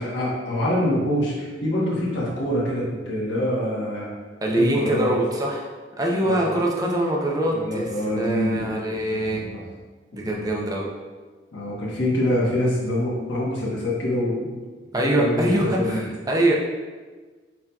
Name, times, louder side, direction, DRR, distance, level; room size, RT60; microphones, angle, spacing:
voice 1, 0.0-4.1 4.6-5.1 6.2-6.6 7.5-9.6 10.3-10.6 11.5-14.6 15.1-16.0, left 1 dB, 70° left, -5 dB, 1.1 m, -25 dB
voice 2, 4.4-5.7 6.0-7.9 8.2-9.4 10.1-10.9 14.9-16.5, right 1 dB, 20° right, -2 dB, 0.5 m, -23 dB
5.7 x 2.7 x 2.3 m, 1.4 s
head